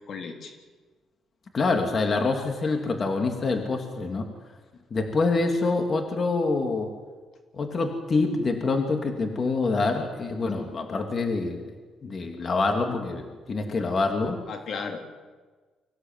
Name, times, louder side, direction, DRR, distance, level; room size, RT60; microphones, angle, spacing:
voice 1, 0.1-0.6 14.5-15.1, left 5 dB, 60° left, 4 dB, 3.3 m, -35 dB
voice 2, 1.5-4.3 4.9-6.9 7.5-11.7 12.0-14.4, left 3 dB, 40° left, 4 dB, 3.0 m, -26 dB
25.0 x 16.5 x 9.3 m, 1.4 s
cardioid pair, 90°, 0 cm